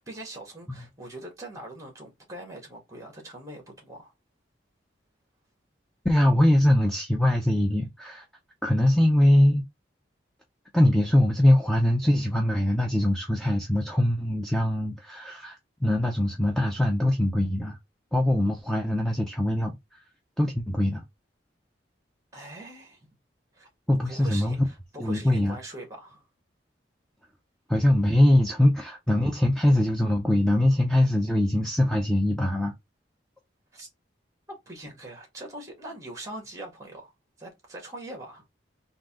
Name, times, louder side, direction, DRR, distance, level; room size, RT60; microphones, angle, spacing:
voice 1, 0.0-4.1 22.3-23.1 23.5-23.7 24.0-26.2 33.7-33.9 34.5-37.1 37.4-38.5, right 1 dB, 15° right, 1.6 m, -42 dB
voice 2, 6.0-8.2 8.6-9.6 10.7-17.8 18.1-19.8 20.4-21.0 23.9-24.6 25.0-25.6 27.7-32.7, left 1 dB, 5° left, 0.5 m, -22 dB
3.8 x 2.7 x 3.6 m
head